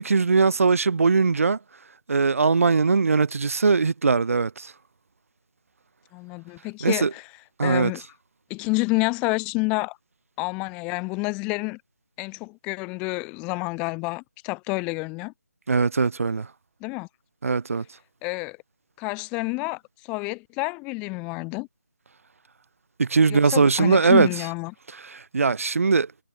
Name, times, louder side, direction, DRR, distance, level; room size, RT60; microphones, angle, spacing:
voice 1, 0.0-1.6 2.1-4.7 6.8-7.1 7.6-7.9 15.7-16.5 17.4-17.8 23.0-24.3 25.0-26.1, right 4 dB, 55° right, 0.7 m, -20 dB
voice 2, 6.1-7.3 7.6-8.0 8.5-10.0 10.4-11.8 12.2-15.3 16.8-17.1 18.2-18.6 19.0-19.8 20.1-21.7 23.3-24.7, left 27 dB, 10° left, 3.1 m, -28 dB
figure-of-eight pair, 170°, 9 cm